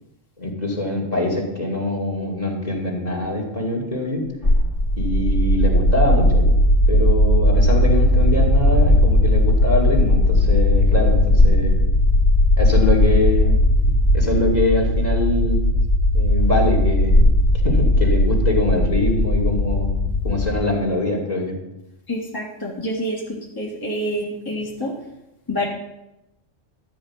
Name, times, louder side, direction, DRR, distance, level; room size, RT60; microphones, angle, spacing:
voice 1, 0.4-4.3 5.0-6.6 6.9-11.9 12.6-13.6 14.1-15.7 16.1-17.3 17.6-20.0 20.2-21.6, left 2 dB, 30° left, -1 dB, 2.4 m, -23 dB
sound 1, 4.4-20.5, left 1 dB, 60° left, 2.4 m, -17 dB
voice 2, 22.1-24.9 25.5-25.7, equal, 15° left, -5 dB, 1.7 m, -27 dB
13.0 x 5.2 x 8.6 m, 0.94 s
omnidirectional pair, 1.3 m